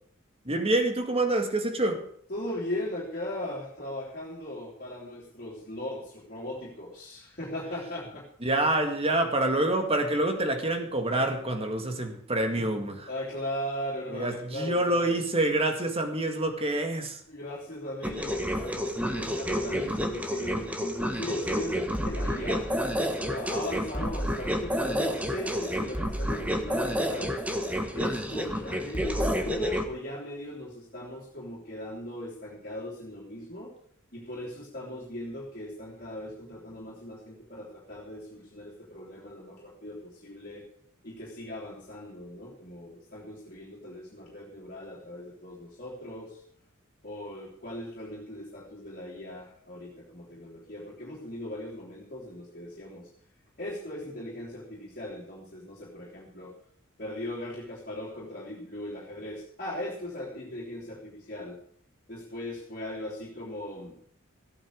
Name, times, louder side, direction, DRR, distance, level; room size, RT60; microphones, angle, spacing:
voice 1, 0.5-2.0 8.4-13.1 14.1-17.2, right 1 dB, 30° right, 5 dB, 2.0 m, -27 dB
voice 2, 2.3-8.3 13.1-15.2 17.3-22.7 23.2-27.3 27.9-33.7 34.1-40.6 41.0-46.4 47.0-53.1 53.6-56.5 57.0-61.6 62.1-64.0, left 1 dB, 40° left, -5 dB, 3.0 m, -38 dB
sound 1, 18.0-29.8, equal, 5° right, 1.4 m, -30 dB
15.0 x 9.0 x 6.5 m, 0.64 s
head